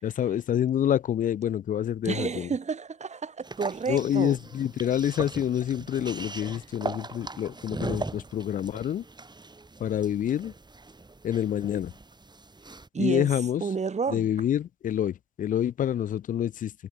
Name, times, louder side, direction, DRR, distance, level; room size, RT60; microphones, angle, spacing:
voice 1, 0.0-2.5 3.9-9.0 9.8-10.5 11.2-11.9 13.0-13.7 14.1-16.7, left 10 dB, 85° left, 0.7 m, -27 dB
voice 2, 2.0-4.4 12.9-13.3 13.6-14.3, right 5 dB, 60° right, 5.8 m, -30 dB
sound 1, 3.4-12.9, right 3 dB, 35° right, 6.1 m, -40 dB
cardioid pair, 50°, 13 cm